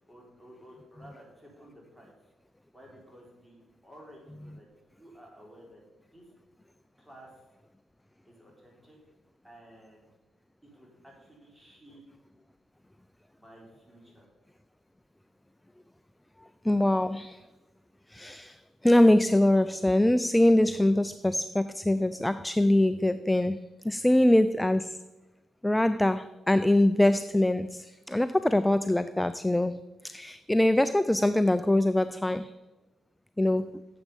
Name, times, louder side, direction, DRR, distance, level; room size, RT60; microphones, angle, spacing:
voice 1, 0.1-2.1 2.7-3.6 3.8-4.7 5.0-5.8 6.1-6.3 7.0-7.3 8.2-9.0 9.4-10.0 10.6-12.0 13.4-14.3, equal, 10° right, 3.5 m, -53 dB
voice 2, 16.6-17.4 18.1-25.0 25.6-32.6 33.4-33.7, left 1 dB, 5° left, 0.3 m, -24 dB
9.5 x 7.4 x 5.3 m
cardioid pair, 90°, 0 cm